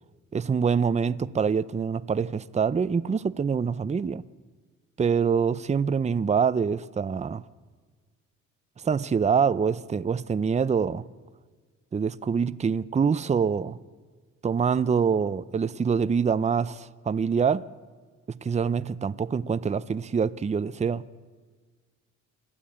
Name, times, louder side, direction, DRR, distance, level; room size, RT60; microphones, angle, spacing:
voice 1, 0.3-4.2 5.0-7.5 8.8-11.1 11.9-13.8 14.4-17.6 18.3-21.0, right 6 dB, 25° right, 0.6 m, -25 dB
27.0 x 12.5 x 8.7 m
cardioid pair, 90°, 30 cm